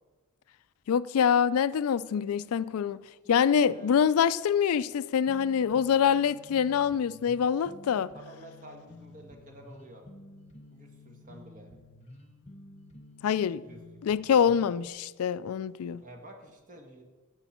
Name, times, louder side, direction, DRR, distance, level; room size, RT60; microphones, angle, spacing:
voice 1, 0.9-3.0 3.3-8.1 13.2-13.6 14.0-16.0, left 7 dB, 75° left, 0.3 m, -25 dB
voice 2, 3.2-4.1 8.1-10.0 10.7-11.7 13.6-13.9 16.0-17.0, right 1 dB, 35° right, 1.6 m, -50 dB
sound 1, 5.3-14.9, left 1 dB, 30° left, 1.1 m, -51 dB
15.0 x 8.1 x 4.3 m
head